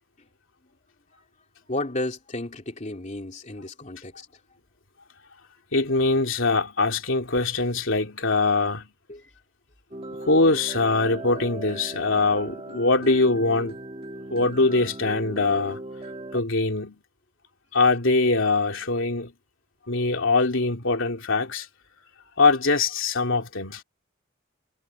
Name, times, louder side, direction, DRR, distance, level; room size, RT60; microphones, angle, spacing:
voice 1, 1.7-4.3 9.1-9.2, left 1 dB, 35° left, 2.9 m, -32 dB
voice 2, 5.7-8.9 10.2-13.7 14.3-15.8 16.3-17.0 17.7-19.3 19.9-21.7 22.4-23.8, left 3 dB, 65° left, 3.2 m, -22 dB
sound 1, 9.9-16.4, right 1 dB, 25° right, 1.6 m, -38 dB
head